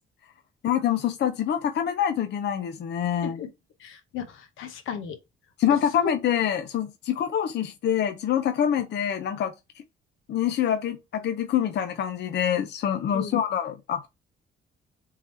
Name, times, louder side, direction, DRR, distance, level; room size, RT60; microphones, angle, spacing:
voice 1, 0.6-3.4 5.6-9.5 10.3-14.1, left 9 dB, 60° left, 0.6 m, -25 dB
voice 2, 3.8-5.2 6.0-6.1 13.1-13.3, left 8 dB, 85° left, 0.9 m, -35 dB
3.8 x 3.0 x 4.2 m
cardioid pair, 90°, 20 cm